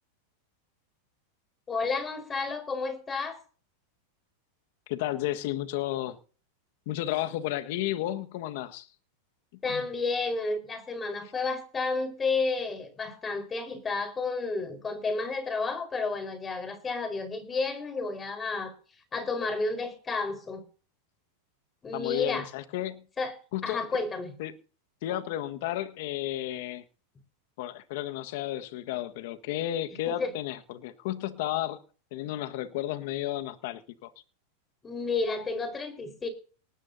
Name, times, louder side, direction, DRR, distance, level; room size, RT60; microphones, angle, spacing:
voice 1, 1.7-3.4 9.6-18.7 19.1-20.6 21.8-22.5 23.2-23.3 23.6-24.3 30.0-30.3 34.8-36.3, left 3 dB, 20° left, 4.5 m, -31 dB
voice 2, 4.9-6.2 6.9-8.9 9.7-9.8 21.9-23.0 23.5-23.9 24.4-24.5 25.0-26.8 27.6-31.8 32.1-34.1, left 14 dB, 65° left, 1.5 m, -32 dB
19.0 x 13.5 x 2.7 m
hypercardioid pair, 120°, 0 cm